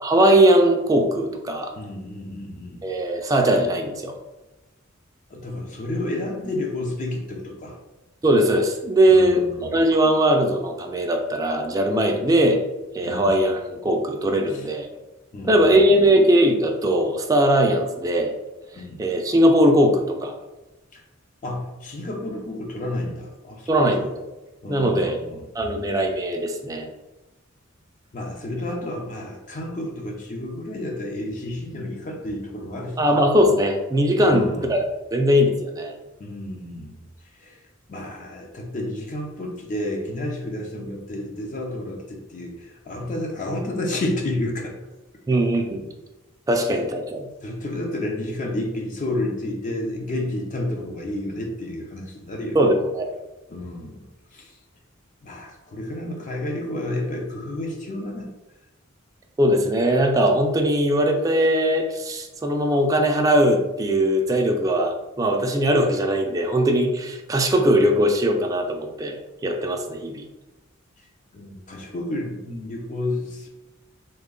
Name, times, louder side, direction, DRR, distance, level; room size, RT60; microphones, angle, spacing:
voice 1, 0.0-1.7 2.8-4.1 8.2-12.6 12.9-14.9 15.5-18.3 19.0-20.4 23.7-24.1 24.7-25.2 25.5-26.9 33.0-34.8 35.1-35.9 45.3-45.9 46.5-47.3 52.5-53.1 59.4-70.2, right 1 dB, 15° right, 2 dB, 0.3 m, -20 dB
voice 2, 1.8-2.9 5.3-7.8 9.1-9.8 13.0-13.3 14.5-14.7 15.3-16.0 18.7-19.0 20.9-21.0 21.4-24.1 24.6-25.4 28.1-33.1 34.2-34.8 36.2-37.0 37.3-37.6 37.9-44.7 45.3-45.4 47.4-52.6 53.5-54.6 55.2-58.3 71.0-71.1 71.3-73.5, left 1 dB, 40° left, 1 dB, 0.5 m, -31 dB
3.4 x 2.1 x 3.7 m, 1.1 s
head